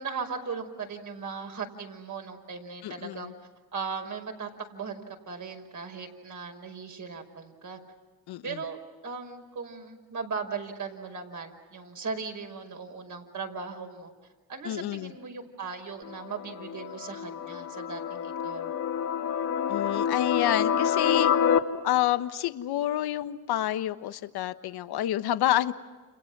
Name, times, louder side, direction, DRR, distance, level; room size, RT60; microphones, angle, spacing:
voice 1, 0.0-3.3 3.7-7.8 8.4-14.1 14.5-18.7, right 5 dB, 45° right, 4 dB, 5.5 m, -38 dB
voice 2, 2.8-3.3 8.3-8.6 14.6-15.1 19.7-21.3 21.8-25.7, left 13 dB, 65° left, 11 dB, 1.3 m, -28 dB
sound 1, 16.0-21.6, left 8 dB, 50° left, 2.3 m, -27 dB
30.0 x 28.5 x 6.1 m, 1.3 s
cardioid pair, 90°, 41 cm